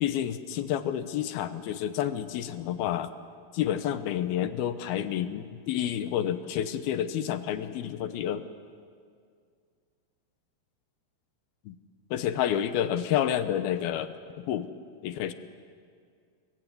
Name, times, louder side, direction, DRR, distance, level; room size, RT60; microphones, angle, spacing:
voice 1, 0.0-3.1 3.5-8.4 11.7-11.8 12.1-14.7 15.0-15.3, left 10 dB, 75° left, 11 dB, 2.6 m, -29 dB
27.5 x 22.0 x 9.5 m, 2.2 s
omnidirectional pair, 4.9 m